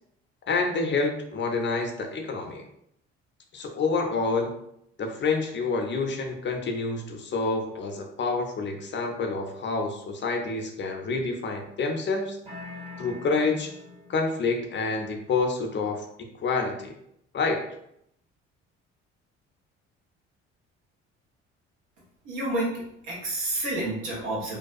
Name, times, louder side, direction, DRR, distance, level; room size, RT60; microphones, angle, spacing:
voice 1, 0.5-2.6 3.5-4.5 5.0-12.4 13.0-13.8 14.1-16.9 17.3-17.7, left 4 dB, 40° left, 3 dB, 0.5 m, -28 dB
sound 1, 12.5-14.4, left 3 dB, 20° right, 0.8 m, -43 dB
voice 2, 22.2-22.8 23.1-24.6, right 1 dB, 80° right, -5 dB, 1.1 m, -29 dB
2.5 x 2.3 x 2.5 m, 0.76 s
hypercardioid pair, 55°, 31 cm